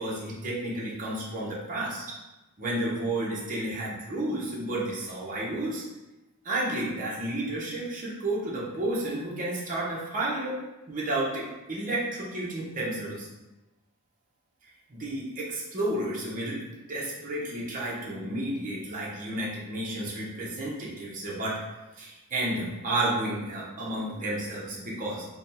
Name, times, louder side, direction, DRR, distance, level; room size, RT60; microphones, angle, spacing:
voice 1, 0.0-2.0 2.6-5.8 6.4-10.6 10.9-13.3 14.9-16.6 16.9-21.6 22.0-25.2, right 1 dB, 40° right, -6 dB, 0.8 m, -31 dB
3.4 x 2.2 x 4.1 m, 1.1 s
head